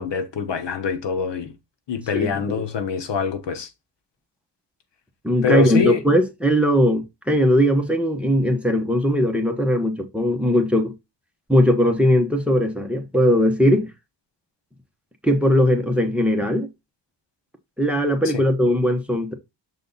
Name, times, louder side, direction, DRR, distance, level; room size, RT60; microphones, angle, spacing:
voice 1, 0.0-1.6 1.9-3.7 5.4-6.0, left 6 dB, 90° left, 1.2 m, -24 dB
voice 2, 2.1-2.6 5.2-10.9 11.5-13.9 15.2-16.7 17.8-19.3, equal, 5° right, 1.0 m, -19 dB
6.8 x 3.8 x 3.9 m
wide cardioid pair, 180°, 41 cm